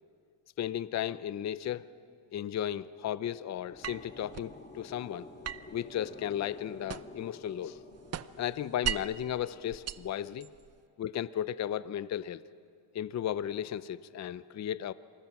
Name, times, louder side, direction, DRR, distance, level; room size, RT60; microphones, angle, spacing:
voice 1, 0.6-1.9 2.3-5.3 5.7-7.8 8.4-10.5 11.0-12.4 12.9-14.9, left 10 dB, 35° left, 16 dB, 0.5 m, -35 dB
sound 1, 3.2-10.3, left 3 dB, 20° left, 1.8 m, -51 dB
sound 2, 3.8-4.6 5.4-7.3 7.6-9.2 9.7-10.8, right 9 dB, 35° right, 0.5 m, -38 dB
27.5 x 21.0 x 5.9 m, 2.3 s
cardioid pair, 125°, 47 cm